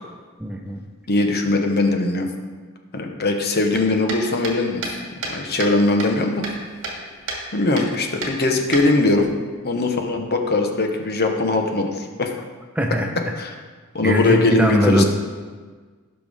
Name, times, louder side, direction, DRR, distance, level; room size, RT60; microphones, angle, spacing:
voice 1, 0.4-0.8 12.7-13.3 14.0-15.0, equal, 5° right, 2 dB, 0.7 m, -20 dB
voice 2, 1.1-2.3 2.9-4.8 5.3-6.4 7.5-9.3 9.6-12.4 13.4-13.5 13.9-15.0, left 2 dB, 50° left, 4 dB, 1.1 m, -20 dB
sound 1, 3.7-5.7 6.0-7.0 7.3-7.4 7.8-7.9 8.2-9.2, right 2 dB, 60° right, 2.1 m, -30 dB
17.5 x 5.9 x 3.6 m, 1.5 s
head